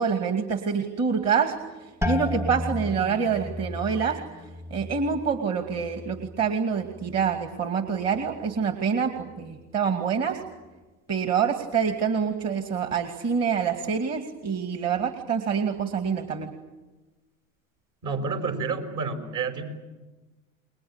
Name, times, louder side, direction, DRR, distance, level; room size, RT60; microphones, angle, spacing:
voice 1, 0.0-1.5 1.8-10.4 11.1-16.5, right 6 dB, 35° right, 7 dB, 2.4 m, -26 dB
sound 1, 2.0-7.6 8.0-8.7 9.2-9.6, left 2 dB, 5° right, 0.8 m, -35 dB
voice 2, 18.0-19.6, right 4 dB, 60° right, 6 dB, 5.8 m, -29 dB
29.5 x 22.0 x 8.9 m, 1.2 s
hypercardioid pair, 85°, 42 cm